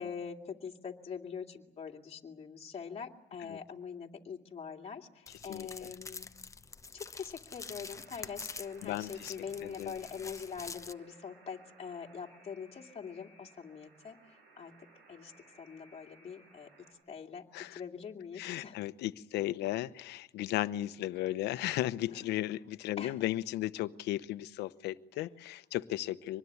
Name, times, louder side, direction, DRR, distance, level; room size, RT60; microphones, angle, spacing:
voice 1, 0.0-6.3 6.9-14.7 15.1-15.3 15.6-18.8 22.1-22.3 23.0-23.2 25.1-25.2, left 6 dB, 35° left, 2 dB, 2.4 m, -43 dB
sound 1, 5.3-10.9, left 4 dB, 20° left, 0.9 m, -47 dB
Alarm, 7.7-16.9, right 2 dB, 80° right, 7.8 m, -61 dB
voice 2, 8.8-9.4 9.6-9.9 17.5-17.8 18.4-26.4, left 15 dB, 80° left, 14 dB, 0.9 m, -35 dB
25.5 x 20.5 x 9.6 m, 0.88 s
cardioid pair, 110°, 17 cm